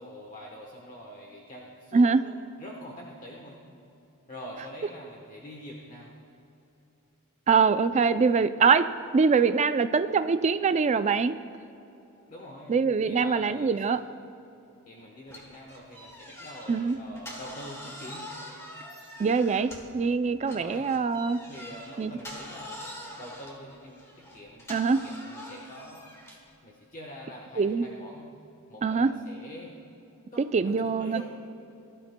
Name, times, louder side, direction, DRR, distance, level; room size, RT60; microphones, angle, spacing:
voice 1, 0.0-3.6 4.3-6.1 12.3-13.9 14.9-18.3 20.5-20.9 21.5-26.1 26.6-28.3 28.7-29.7 30.3-31.2, equal, 35° left, -1 dB, 1.1 m, -45 dB
voice 2, 7.5-11.4 12.7-14.0 16.7-17.0 19.2-21.4 22.0-22.1 24.7-25.0 27.6-27.8 28.8-29.1 30.4-31.2, right 5 dB, 30° right, 11 dB, 0.3 m, -23 dB
sound 1, 15.3-20.0 20.4-26.5, left 1 dB, 15° left, 1.7 m, -44 dB
19.5 x 12.5 x 2.2 m, 2.9 s
head